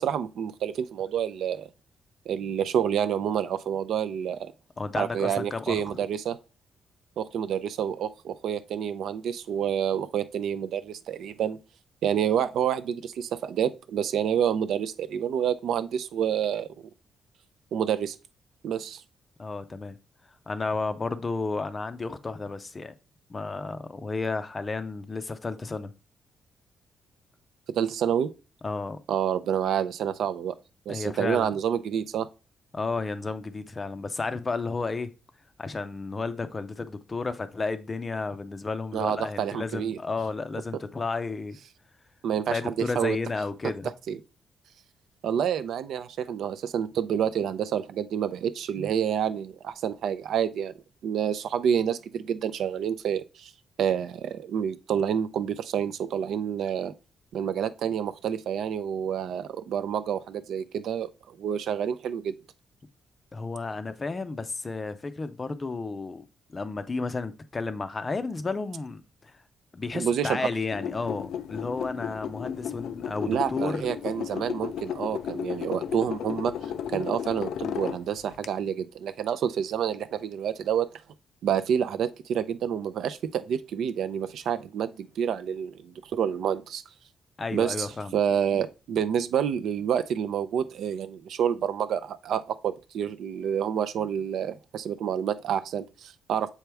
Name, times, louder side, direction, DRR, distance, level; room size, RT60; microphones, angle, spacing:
voice 1, 0.0-1.7 2.3-4.5 5.0-6.4 7.2-11.6 12.0-16.7 17.7-18.2 18.6-19.0 27.7-28.3 29.1-30.5 30.9-32.3 38.9-40.0 42.2-43.2 44.1-44.2 45.2-50.7 51.0-53.5 53.8-56.9 57.3-62.3 69.9-70.5 73.3-80.9 81.4-86.8 87.5-87.9 88.1-96.5, right 8 dB, 65° right, 0.5 m, -28 dB
voice 2, 4.8-5.8 19.4-20.0 20.5-22.9 23.3-25.9 28.6-29.0 30.9-31.6 32.7-35.1 35.6-41.6 42.5-43.9 63.3-66.2 66.5-69.4 69.7-73.9 87.4-88.2, left 3 dB, 20° left, 0.5 m, -32 dB
sound 1, 70.7-78.5, left 8 dB, 75° left, 0.5 m, -34 dB
7.0 x 4.5 x 3.4 m
cardioid pair, 170°, 0 cm